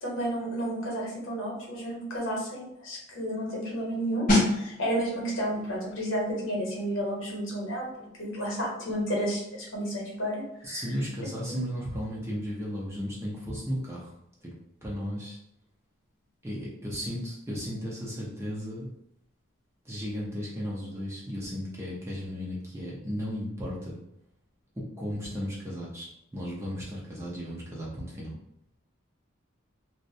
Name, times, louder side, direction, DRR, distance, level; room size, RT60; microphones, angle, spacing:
voice 1, 0.0-10.8 11.5-11.6, equal, 70° left, -3 dB, 0.9 m, -32 dB
sound 1, 4.3-14.8 15.1-15.3, left 1 dB, 40° left, 0.6 m, -34 dB
voice 2, 10.6-14.1 14.4-14.5 14.8-15.4 16.4-18.9 19.8-24.0 24.7-28.3, equal, 15° right, -6 dB, 0.5 m, -35 dB
2.5 x 2.1 x 2.6 m, 0.79 s
head